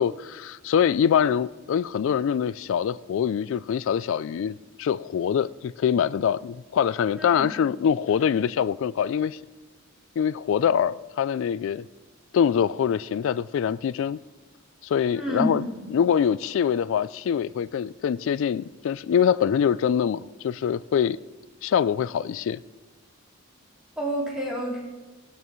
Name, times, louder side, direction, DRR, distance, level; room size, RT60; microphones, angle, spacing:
voice 1, 0.0-9.4 10.2-11.9 12.3-14.2 14.8-15.6 15.9-21.2 21.6-22.6, left 8 dB, 65° left, 0.3 m, -24 dB
voice 2, 7.2-7.5 15.1-15.8 24.0-24.8, equal, 5° right, 4.0 m, -29 dB
17.0 x 12.0 x 3.1 m
head